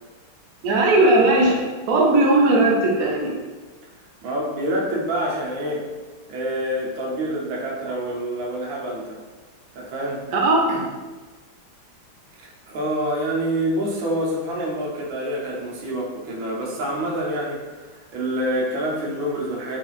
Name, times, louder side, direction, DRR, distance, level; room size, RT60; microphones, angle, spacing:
voice 1, 0.6-1.6 1.9-3.3 10.3-10.6, right 2 dB, 60° right, -3 dB, 1.0 m, -17 dB
voice 2, 4.2-5.9 6.3-9.2 9.7-10.2 10.7-10.9 12.4-17.8 18.1-19.8, right 1 dB, 80° right, -3 dB, 1.6 m, -27 dB
4.7 x 3.2 x 2.4 m, 1.3 s
omnidirectional pair, 2.1 m